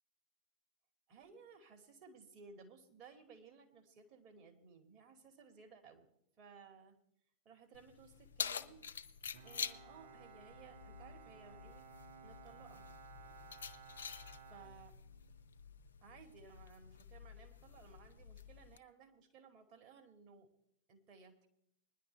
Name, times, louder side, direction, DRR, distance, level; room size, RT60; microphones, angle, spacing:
voice 1, 1.1-6.1 6.4-7.0 7.4-8.8 9.4-11.9 12.2-12.9 14.5-14.9 16.0-20.5 20.9-21.5, right 5 dB, 35° right, 3 dB, 2.2 m, -59 dB
Keys jangling, 7.7-18.8, left 6 dB, 65° left, 0.7 m, -48 dB
Bowed string instrument, 9.3-15.5, right 6 dB, 60° right, 1.0 m, -58 dB
20.0 x 11.0 x 3.4 m, 0.75 s
figure-of-eight pair, 90°, 0 cm